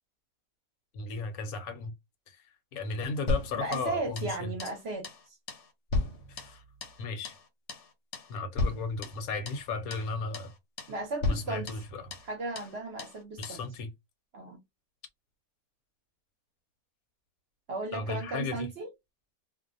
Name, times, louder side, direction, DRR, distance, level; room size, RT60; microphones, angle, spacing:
voice 1, 0.9-1.9 2.3-2.4 2.7-4.5 6.3-6.6 7.0-7.3 8.3-10.5 11.3-12.0 13.4-13.9 17.9-18.7, left 4 dB, 80° left, 1.1 m, -35 dB
sound 1, 3.3-4.3 4.6-4.8 5.0-5.2 5.5-7.0 7.2-7.4 7.7-7.9 8.1-8.3 8.6-9.6 9.9-10.1 10.3-10.5 10.8-11.0 11.2-12.3 12.6-12.7 13.0-13.2 13.4-13.6, left 3 dB, 65° left, 0.9 m, -34 dB
voice 2, 3.6-5.4 10.9-11.7 12.3-13.6 14.3-14.6 17.7-18.9, right 3 dB, 55° right, 0.8 m, -35 dB
2.5 x 2.1 x 2.5 m
omnidirectional pair, 1.5 m